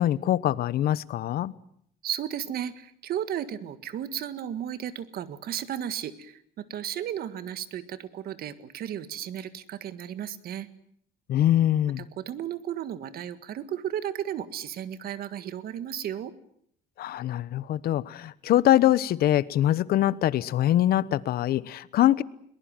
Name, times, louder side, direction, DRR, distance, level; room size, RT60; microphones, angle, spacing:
voice 1, 0.0-1.5 11.3-12.0 17.0-22.2, left 12 dB, 65° left, 19 dB, 1.0 m, -23 dB
voice 2, 2.0-10.7 12.0-16.3, right 10 dB, 65° right, 13 dB, 1.8 m, -34 dB
22.5 x 20.0 x 9.0 m, 0.68 s
cardioid pair, 110°, 17 cm